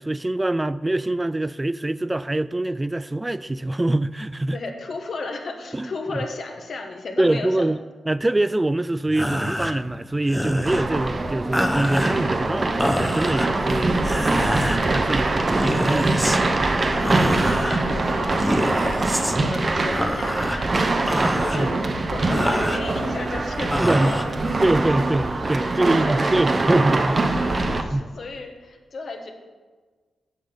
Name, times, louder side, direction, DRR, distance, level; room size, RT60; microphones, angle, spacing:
voice 1, 0.0-4.6 5.7-6.3 7.2-7.8 8.1-14.0 14.6-16.2 21.5-21.7 23.8-24.2 24.6-27.2 27.9-28.1, right 1 dB, 20° right, 0.4 m, -24 dB
voice 2, 4.5-7.7 16.8-19.1 19.4-21.1 21.4-24.4 25.8-26.3 27.5-29.3, left 3 dB, 65° left, 1.7 m, -34 dB
sound 1, 9.1-25.0, equal, 5° left, 1.0 m, -29 dB
sound 2, 10.6-27.8, right 2 dB, 45° right, 1.0 m, -23 dB
7.8 x 7.6 x 6.9 m
supercardioid pair, 45°, 0 cm